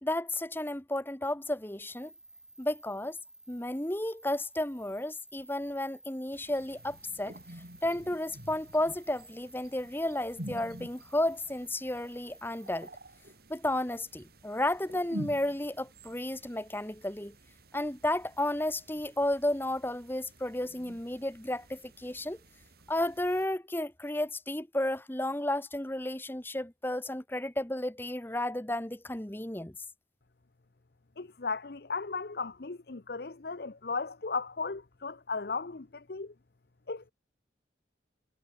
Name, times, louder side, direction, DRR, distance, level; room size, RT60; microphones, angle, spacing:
voice 1, 0.0-2.1 2.6-3.2 3.5-7.4 7.8-12.9 13.5-17.3 17.7-22.4 22.9-29.8, left 1 dB, 10° left, 1.0 m, -32 dB
sound 1, 1.8-12.9, right 2 dB, 5° right, 3.1 m, -56 dB
sound 2, 6.3-23.5, equal, 55° right, 6.9 m, -49 dB
voice 2, 31.2-36.3 36.9-37.1, left 4 dB, 55° left, 0.8 m, -36 dB
head